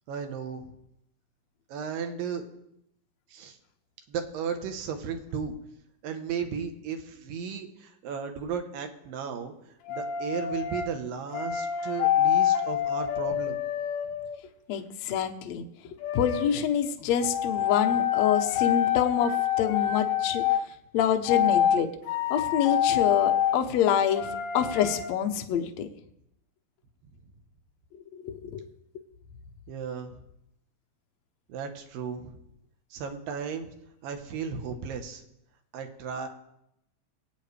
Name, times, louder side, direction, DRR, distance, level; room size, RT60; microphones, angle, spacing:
voice 1, 0.1-0.7 1.7-2.4 3.3-3.6 4.1-5.5 6.0-9.5 9.9-13.6 29.7-30.1 31.5-32.4 32.9-33.7 34.0-35.2 35.7-36.3, right 6 dB, 75° right, 6 dB, 2.8 m, -35 dB
sound 1, 9.9-10.9 11.3-14.4 16.0-16.5 17.2-20.6 21.3-21.8 22.1-23.6 24.1-25.1, left 10 dB, 85° left, 3.1 m, -26 dB
voice 2, 14.7-15.7 16.1-20.5 20.9-21.9 22.3-25.9 28.1-28.6, left 9 dB, 65° left, 5 dB, 1.8 m, -26 dB
24.0 x 8.8 x 3.3 m, 0.79 s
omnidirectional pair, 4.1 m